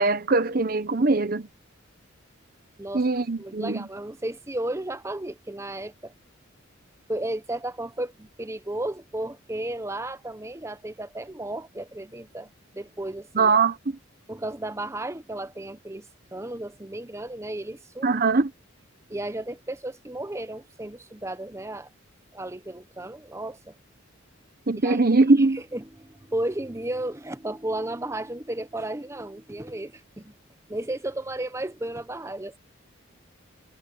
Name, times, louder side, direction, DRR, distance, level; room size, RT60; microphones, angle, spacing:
voice 1, 0.0-1.5 2.9-3.8 13.3-13.8 18.0-18.5 24.7-25.6, right 3 dB, 45° right, 0.9 m, -21 dB
voice 2, 3.4-6.1 7.1-13.5 14.3-18.2 19.1-21.9 22.3-23.8 24.8-25.0 25.4-30.3 30.7-32.6, right 1 dB, 15° right, 0.7 m, -34 dB
head